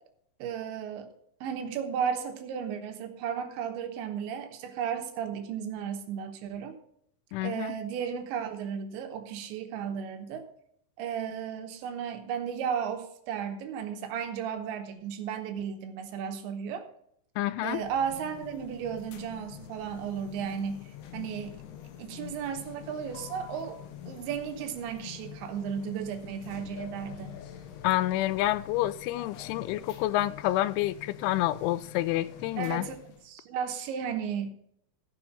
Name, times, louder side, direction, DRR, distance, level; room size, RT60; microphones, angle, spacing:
voice 1, 0.4-1.1 1.4-6.7 7.4-10.5 11.0-16.9 17.6-21.6 22.0-23.8 24.1-27.4 32.6-33.0 33.2-34.6, right 7 dB, 80° right, 3.4 m, -34 dB
voice 2, 7.3-7.8 17.4-17.8 27.8-32.9, left 15 dB, 85° left, 3.0 m, -28 dB
sound 1, 17.7-33.3, left 10 dB, 70° left, 2.9 m, -46 dB
15.0 x 5.9 x 5.3 m
omnidirectional pair, 5.3 m